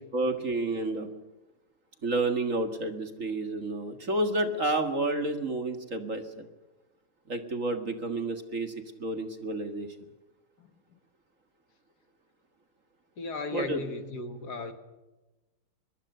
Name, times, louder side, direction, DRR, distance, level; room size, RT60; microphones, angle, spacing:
voice 1, 0.1-1.1 2.0-6.5 7.3-8.7 9.0-9.9 13.5-13.8, right 2 dB, 40° right, 2.0 m, -30 dB
voice 2, 10.6-11.0 13.2-14.7, left 3 dB, 50° left, 1.9 m, -37 dB
24.0 x 21.5 x 6.7 m
omnidirectional pair, 2.4 m